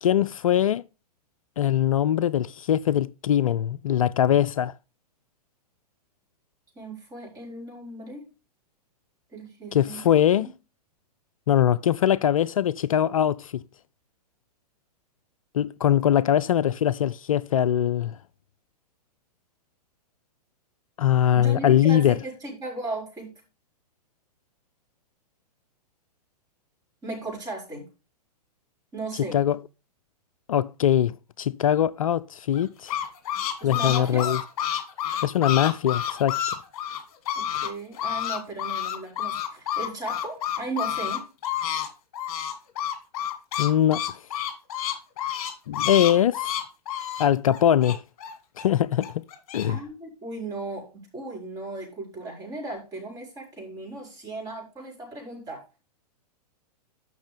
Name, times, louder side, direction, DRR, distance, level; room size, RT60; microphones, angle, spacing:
voice 1, 0.0-0.8 1.6-4.7 9.7-10.5 11.5-13.6 15.5-18.2 21.0-22.1 29.1-29.6 30.5-32.9 33.6-34.4 35.2-36.4 43.6-44.2 45.7-46.5 47.2-48.0 48.6-49.2 49.5-49.8, left 10 dB, 55° left, 0.4 m, -22 dB
voice 2, 6.7-8.2 9.3-10.0 10.3-10.5 21.3-23.3 27.0-27.9 28.9-29.4 33.6-34.3 37.3-41.2 49.7-55.6, right 2 dB, 15° right, 5.0 m, -36 dB
sound 1, 32.5-37.7 37.9-41.9 42.1-48.6 49.0-49.7, left 10 dB, 40° left, 2.5 m, -29 dB
12.5 x 6.2 x 3.5 m
figure-of-eight pair, 105°, 21 cm